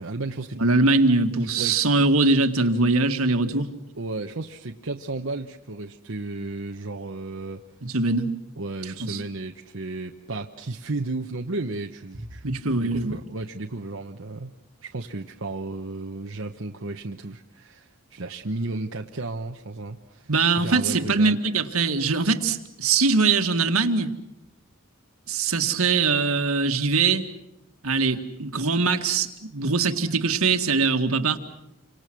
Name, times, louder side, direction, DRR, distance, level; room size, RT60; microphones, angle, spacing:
voice 1, 0.0-0.6 1.6-1.7 4.0-7.6 8.6-12.5 12.7-21.4, right 2 dB, 65° right, 3 dB, 1.0 m, -33 dB
voice 2, 0.6-3.7 7.8-8.3 9.0-9.2 12.4-13.1 20.3-24.1 25.3-27.2 27.8-31.4, right 3 dB, 80° right, 6 dB, 1.9 m, -22 dB
29.0 x 25.5 x 6.2 m, 0.91 s
head